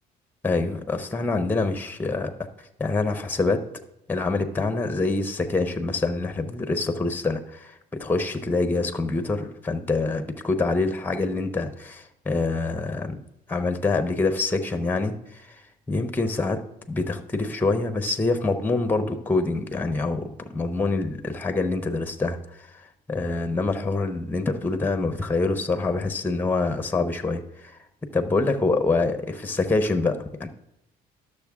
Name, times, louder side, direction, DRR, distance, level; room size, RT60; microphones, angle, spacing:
voice 1, 0.4-2.3 2.6-3.7 4.1-13.2 13.5-15.5 15.9-16.6 16.9-27.8 28.1-30.5, left 3 dB, 10° left, 7 dB, 0.8 m, -26 dB
11.5 x 6.7 x 3.6 m, 0.84 s
cardioid pair, 110°, 17 cm